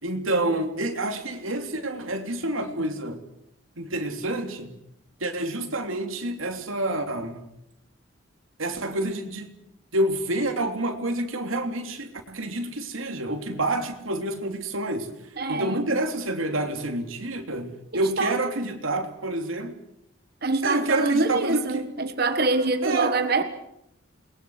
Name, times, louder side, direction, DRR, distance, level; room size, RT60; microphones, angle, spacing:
voice 1, 0.0-3.2 3.8-4.7 5.2-7.4 8.6-9.5 9.9-15.1 15.5-19.8 20.6-21.9 22.8-23.2, right 1 dB, 85° right, 3.0 m, -28 dB
voice 2, 15.4-15.8 17.9-18.4 20.4-23.4, right 3 dB, 50° right, 1.4 m, -25 dB
29.0 x 21.5 x 6.4 m
head